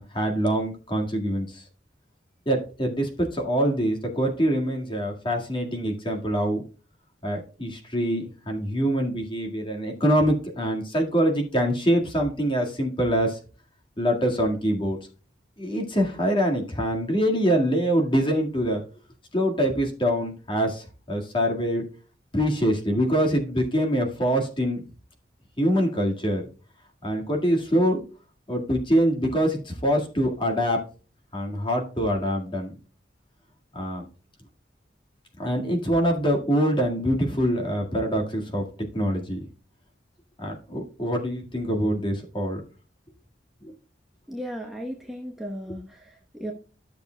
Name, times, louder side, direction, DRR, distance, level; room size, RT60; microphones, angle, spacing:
voice 1, 0.0-1.6 2.5-6.6 7.2-13.4 14.0-15.0 15.6-18.8 19.3-21.8 22.3-24.8 25.6-26.4 27.0-28.0 28.5-30.8 31.3-32.7 33.7-34.1 35.4-38.7 38.9-39.4 40.4-42.6 43.6-43.7, equal, 30° left, 1 dB, 1.8 m, -24 dB
voice 2, 44.3-46.5, equal, ahead, -2 dB, 1.0 m, -36 dB
13.0 x 6.8 x 2.2 m, 0.36 s
head